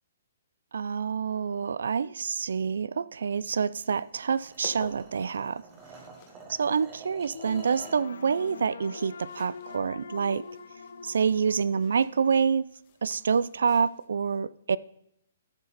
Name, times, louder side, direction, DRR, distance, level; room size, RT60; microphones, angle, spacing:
voice 1, 0.7-5.6 6.5-10.4 11.0-12.7 13.0-14.8, right 6 dB, 80° right, 0.4 m, -27 dB
sound 1, 3.3-14.1, left 8 dB, 30° left, 1.3 m, -53 dB
sound 2, 3.7-8.1, right 4 dB, 15° right, 1.3 m, -49 dB
sound 3, 7.3-12.4, left 5 dB, 80° left, 0.7 m, -44 dB
14.0 x 6.6 x 4.0 m
hypercardioid pair, 175°, 0 cm